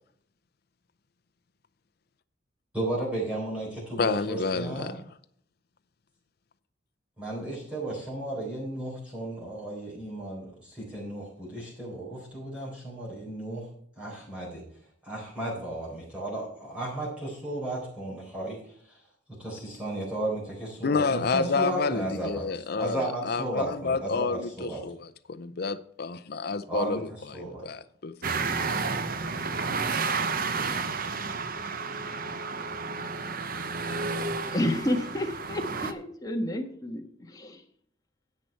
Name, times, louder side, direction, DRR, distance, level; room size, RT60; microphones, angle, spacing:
voice 1, 2.7-4.9 7.2-13.7 14.0-14.6 15.0-18.6 18.9-19.0 19.4-22.4 22.8-24.8 26.7-27.0 27.3-27.6, right 1 dB, 5° right, 4.1 m, -34 dB
voice 2, 4.0-5.0 20.8-28.3, left 4 dB, 55° left, 0.5 m, -29 dB
sound 1, 28.2-35.9, right 4 dB, 50° right, 0.9 m, -31 dB
voice 3, 34.5-37.6, left 1 dB, 20° left, 1.5 m, -30 dB
10.5 x 8.3 x 4.5 m
head